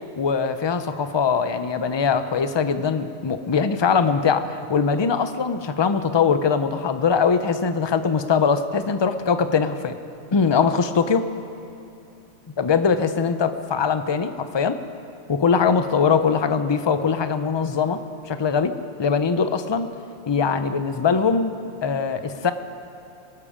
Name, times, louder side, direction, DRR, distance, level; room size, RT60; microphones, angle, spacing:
voice 1, 0.2-10.0 10.3-11.3 12.6-14.8 15.3-18.0 18.3-18.7 19.0-19.9 20.3-21.5 21.8-22.5, left 5 dB, 35° left, 10 dB, 0.4 m, -21 dB
22.5 x 12.5 x 5.1 m, 2.7 s
omnidirectional pair, 1.4 m